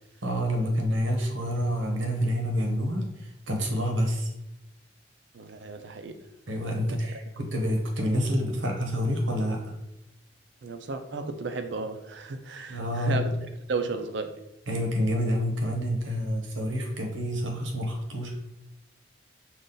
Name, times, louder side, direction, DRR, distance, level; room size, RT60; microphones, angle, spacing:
voice 1, 0.2-4.3 6.5-9.7 12.7-13.3 14.7-18.3, equal, 85° right, 1.0 m, -28 dB
voice 2, 5.3-6.2 6.9-7.0 10.6-13.3 13.7-14.4, right 3 dB, 70° right, 0.5 m, -34 dB
5.4 x 2.5 x 3.8 m
head